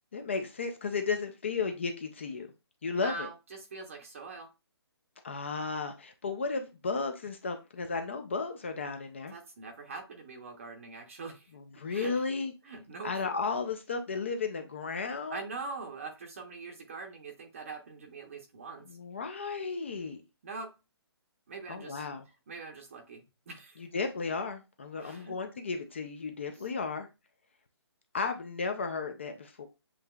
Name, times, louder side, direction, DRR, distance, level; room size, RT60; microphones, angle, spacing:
voice 1, 0.1-2.5 2.8-3.3 5.2-9.4 11.5-12.5 13.0-15.4 18.9-20.2 21.7-22.3 23.8-27.1 28.1-29.7, left 4 dB, 25° left, 0.4 m, -34 dB
voice 2, 2.9-4.5 9.3-11.5 11.9-12.1 12.7-13.1 15.3-18.9 20.4-20.7 21.5-22.1 22.5-23.8 25.0-25.4 26.5-26.7, right 4 dB, 30° right, 0.7 m, -43 dB
7.5 x 2.8 x 2.3 m
hypercardioid pair, 170°, 14 cm